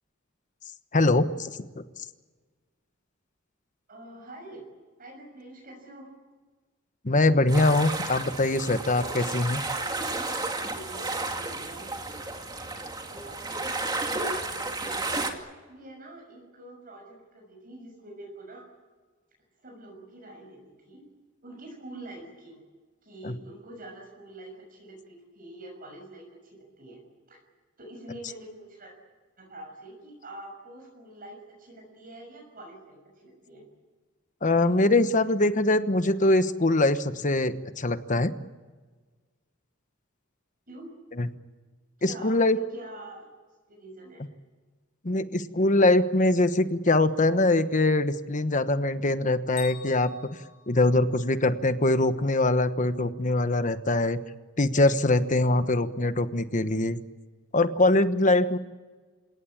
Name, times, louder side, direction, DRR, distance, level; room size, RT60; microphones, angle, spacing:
voice 1, 0.9-1.6 7.0-9.6 23.2-23.3 34.4-38.3 41.2-41.3 42.0-42.6 45.0-50.1 50.7-54.2 54.6-57.0 57.5-58.6, left 2 dB, 40° left, 11 dB, 1.1 m, -23 dB
voice 2, 3.9-4.6 5.0-6.1 10.6-11.9 13.1-15.4 15.7-18.6 19.6-21.0 21.4-22.6 23.0-27.4 27.8-28.9 29.4-33.6 40.7-40.9 42.0-43.3 43.7-44.3, right 1 dB, 45° right, 0 dB, 6.4 m, -46 dB
sound 1, 7.5-15.3, right 2 dB, 20° right, 2.4 m, -32 dB
Bell, 49.6-51.6, left 8 dB, 90° left, 6.0 m, -47 dB
28.5 x 18.0 x 8.8 m, 1.4 s
head